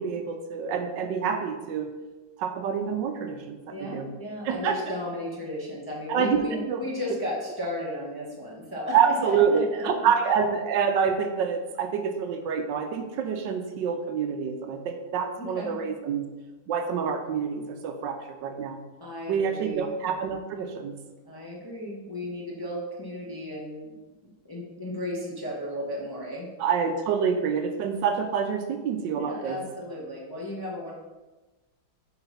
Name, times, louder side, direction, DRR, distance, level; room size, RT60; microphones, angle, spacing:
voice 1, 0.0-1.9 2.4-4.1 4.4-5.0 6.1-6.4 6.7-6.8 8.9-16.2 16.7-18.8 19.3-21.0 26.6-29.6, right 6 dB, 75° right, 6 dB, 1.3 m, -27 dB
voice 2, 3.7-10.1 15.4-15.7 19.0-19.9 21.3-23.9 24.2-26.5 29.1-30.9, left 1 dB, 15° left, -4 dB, 0.8 m, -35 dB
5.8 x 3.9 x 5.6 m, 1.2 s
omnidirectional pair, 2.0 m